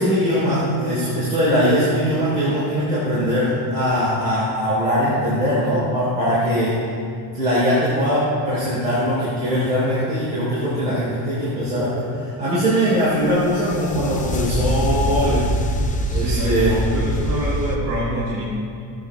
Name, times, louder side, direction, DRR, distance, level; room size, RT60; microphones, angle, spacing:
voice 1, 0.0-6.8 7.3-15.4 16.1-16.8, equal, 15° right, -11 dB, 3.1 m, -21 dB
sound 1, 13.2-17.8, equal, 20° left, 0.6 m, -24 dB
voice 2, 16.1-18.4, equal, 40° right, -8 dB, 2.5 m, -26 dB
15.5 x 9.1 x 3.2 m, 2.3 s
cardioid pair, 165°, 43 cm